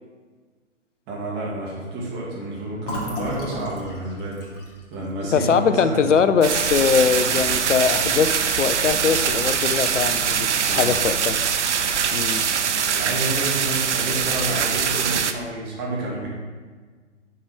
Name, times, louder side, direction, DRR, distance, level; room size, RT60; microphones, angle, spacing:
voice 1, 1.1-4.4 4.9-6.1 10.6-11.0 12.9-16.3, right 2 dB, 25° right, -4 dB, 2.3 m, -29 dB
Fill (with liquid), 2.8-6.5 6.8-7.0 7.3-7.9, left 1 dB, 50° left, 2.2 m, -35 dB
voice 2, 5.3-11.3 12.1-12.5, left 6 dB, 75° left, 11 dB, 0.6 m, -21 dB
sound 1, 6.4-15.3, right 7 dB, 70° right, 0.6 m, -23 dB
6.6 x 5.6 x 4.9 m, 1.5 s
figure-of-eight pair, 120°, 37 cm